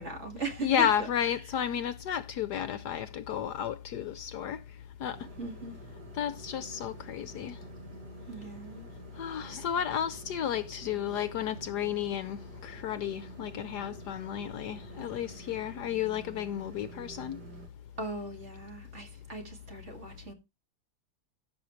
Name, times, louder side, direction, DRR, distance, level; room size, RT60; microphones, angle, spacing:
voice 1, 0.0-1.1 5.4-5.8 8.3-8.9 15.4-15.6 18.0-20.3, right 3 dB, 40° right, 2.5 m, -39 dB
voice 2, 0.6-4.6 5.0-5.2 6.2-7.6 9.2-17.4, left 9 dB, 70° left, 1.1 m, -32 dB
sound 1, 5.1-17.7, right 4 dB, 60° right, 2.0 m, -49 dB
15.5 x 6.5 x 3.2 m
omnidirectional pair, 2.0 m